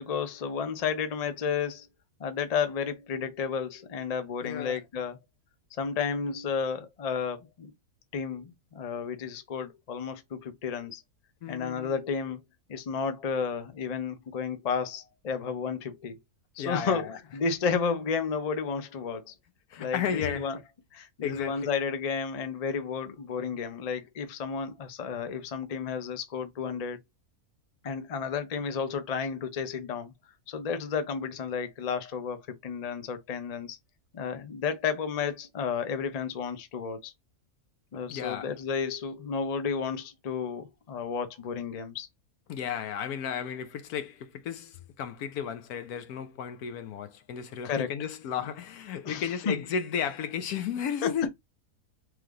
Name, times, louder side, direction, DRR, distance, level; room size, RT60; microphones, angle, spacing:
voice 1, 0.0-1.9 2.2-5.2 5.8-7.7 8.1-11.0 11.5-12.4 12.7-16.2 16.6-17.0 17.3-19.3 19.8-20.6 20.9-27.0 27.8-30.1 30.5-33.8 34.1-37.1 37.9-42.1 47.6-47.9 49.0-49.6 51.0-51.1, left 6 dB, 45° left, 0.5 m, -32 dB
voice 2, 4.4-4.8 11.4-12.0 16.6-17.2 19.7-20.5 21.2-21.7 38.1-38.5 42.5-51.3, left 8 dB, 80° left, 1.2 m, -33 dB
3.4 x 3.2 x 3.7 m
omnidirectional pair, 1.6 m